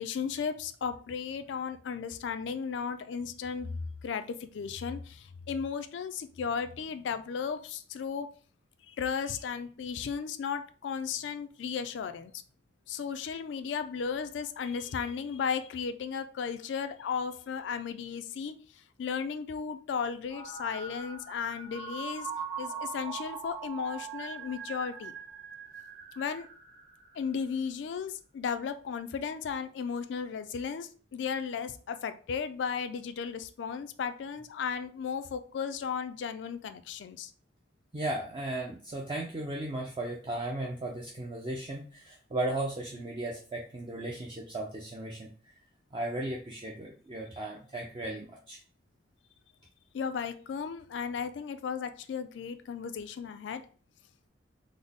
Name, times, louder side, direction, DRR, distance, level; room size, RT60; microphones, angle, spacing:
voice 1, 0.0-3.7 4.0-8.3 8.9-12.4 12.9-18.5 19.0-22.3 22.6-25.1 26.2-26.5 27.2-37.3 49.9-53.6, left 6 dB, 70° left, 10 dB, 0.3 m, -35 dB
sound 1, 20.3-27.6, right 6 dB, 50° right, 1.4 m, -41 dB
voice 2, 37.9-45.3 45.9-48.6, right 1 dB, 25° right, -2 dB, 0.4 m, -36 dB
3.9 x 2.0 x 3.4 m, 0.40 s
head